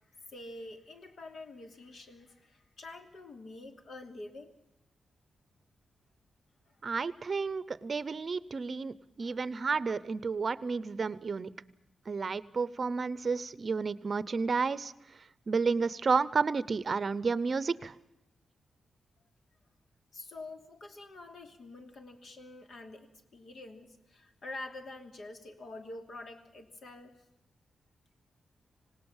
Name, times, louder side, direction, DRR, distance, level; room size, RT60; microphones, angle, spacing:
voice 1, 0.3-4.5 6.7-6.8 9.2-9.4 20.1-23.1 23.3-27.1, left 2 dB, 60° left, 6 dB, 2.9 m, -47 dB
voice 2, 6.8-11.5 12.1-14.9 15.5-17.9, right 4 dB, 40° right, 17 dB, 0.8 m, -31 dB
26.5 x 18.5 x 7.3 m, 0.84 s
wide cardioid pair, 125°, 0 cm